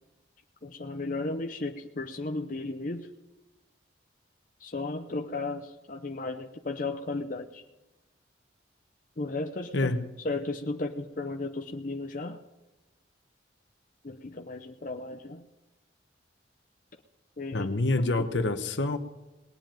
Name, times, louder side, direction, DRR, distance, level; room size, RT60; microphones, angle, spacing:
voice 1, 0.6-3.1 4.6-7.6 9.2-9.9 10.2-12.4 14.0-15.4 17.4-17.7 18.2-18.3, left 2 dB, 45° left, 4 dB, 0.8 m, -34 dB
voice 2, 9.7-10.0 17.5-19.0, left 2 dB, 75° left, 8 dB, 1.1 m, -27 dB
19.5 x 7.7 x 9.1 m, 1.1 s
head